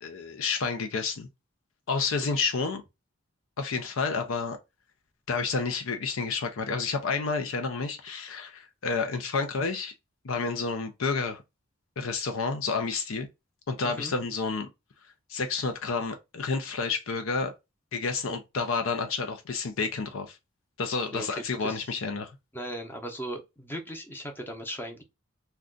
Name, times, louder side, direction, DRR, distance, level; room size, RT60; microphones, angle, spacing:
voice 1, 0.0-1.3 1.9-2.8 3.6-4.6 5.3-9.9 10.2-11.4 12.0-13.3 13.7-14.7 15.3-17.5 17.9-20.4 20.8-22.3, left 4 dB, 70° left, 0.5 m, -30 dB
voice 2, 21.1-21.9 22.5-25.0, equal, 10° left, 0.7 m, -38 dB
2.5 x 2.3 x 3.7 m
head